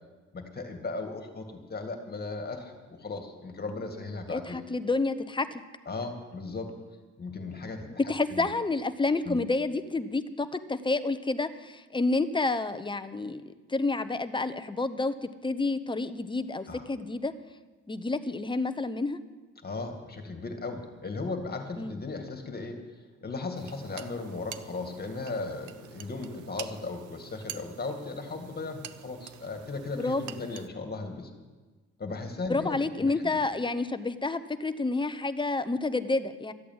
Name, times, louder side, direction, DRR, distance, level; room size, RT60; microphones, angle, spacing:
voice 1, 0.3-4.6 5.9-6.7 7.2-8.5 9.3-9.4 16.7-16.9 19.6-22.8 23.2-31.3 32.0-33.4, left 3 dB, 30° left, 5 dB, 2.2 m, -37 dB
voice 2, 4.3-5.6 7.9-13.4 13.7-17.3 17.9-19.2 21.8-22.0 30.0-30.3 32.5-36.5, left 3 dB, 15° left, 11 dB, 0.8 m, -29 dB
sound 1, 23.5-30.7, right 11 dB, 85° right, 0.8 m, -46 dB
13.5 x 8.3 x 9.6 m, 1.3 s
cardioid pair, 90°, 30 cm